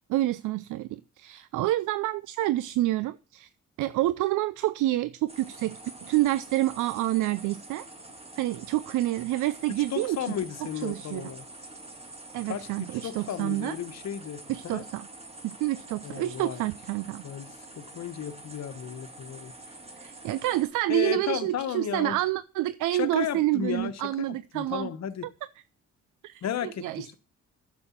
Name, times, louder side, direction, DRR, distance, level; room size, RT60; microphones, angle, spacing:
voice 1, 0.1-3.5 3.8-7.9 8.4-10.2 10.8-11.3 12.3-13.8 14.5-15.1 15.4-17.2 20.0-24.9 26.2-26.5 26.8-27.1, right 16 dB, 80° right, 0.5 m, -28 dB
sound 1, 5.3-20.6, right 2 dB, 20° right, 2.1 m, -46 dB
voice 2, 9.9-11.4 12.5-14.8 16.0-16.6 17.2-19.5 20.9-22.2 22.9-25.3 26.4-27.1, left 9 dB, 60° left, 1.2 m, -34 dB
9.9 x 7.0 x 5.8 m
cardioid pair, 90°, 30 cm